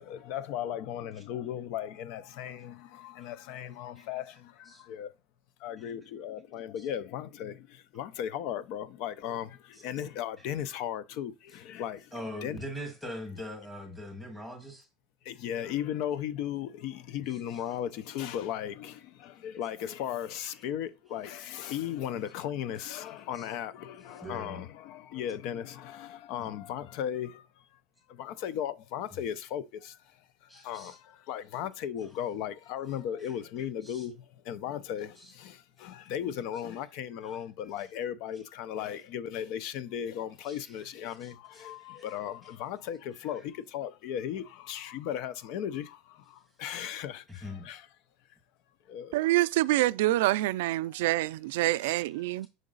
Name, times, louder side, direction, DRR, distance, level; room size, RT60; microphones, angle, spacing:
voice 1, 0.0-5.1 5.6-12.1 12.4-12.6 15.2-27.8 28.1-47.9 48.9-49.2, left 10 dB, 55° left, 0.5 m, -36 dB
voice 2, 12.1-14.9 21.6-21.7 23.3-23.5 24.2-24.6 26.4-26.5 30.5-31.0 33.8-34.0 35.2-35.3 40.5-40.6 41.2-42.0 47.3-47.7 51.8-52.0, left 1 dB, 5° left, 2.1 m, -42 dB
voice 3, 49.1-52.5, right 17 dB, 90° right, 0.3 m, -26 dB
6.4 x 3.9 x 3.9 m
cardioid pair, 160°, 0 cm